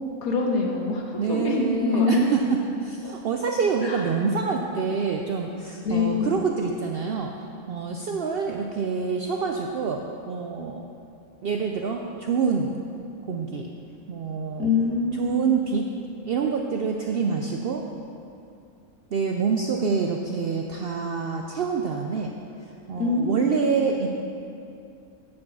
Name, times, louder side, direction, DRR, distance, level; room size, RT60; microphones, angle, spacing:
voice 1, 0.2-2.3 3.8-4.0 5.8-6.4 14.6-15.5 23.0-23.8, left 3 dB, 85° left, 0 dB, 1.6 m, -25 dB
voice 2, 1.2-7.3 7.7-10.8 11.4-12.8 13.2-13.7 14.1-14.7 15.1-15.8 16.2-17.8 19.1-22.4 22.6-24.1, right 5 dB, 70° right, 2 dB, 0.5 m, -26 dB
8.6 x 4.7 x 7.2 m, 2.6 s
omnidirectional pair, 1.5 m